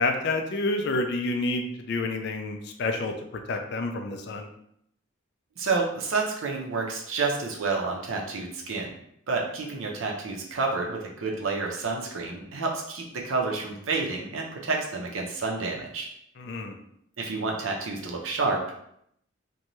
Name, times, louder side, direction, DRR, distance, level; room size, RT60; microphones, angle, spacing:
voice 1, 0.0-3.2 3.5-4.5 16.4-16.8, left 2 dB, 55° left, 5 dB, 0.3 m, -28 dB
voice 2, 5.6-8.9 9.3-16.1 17.2-18.8, right 3 dB, 75° right, 0 dB, 0.6 m, -29 dB
2.6 x 2.2 x 3.0 m, 0.72 s
head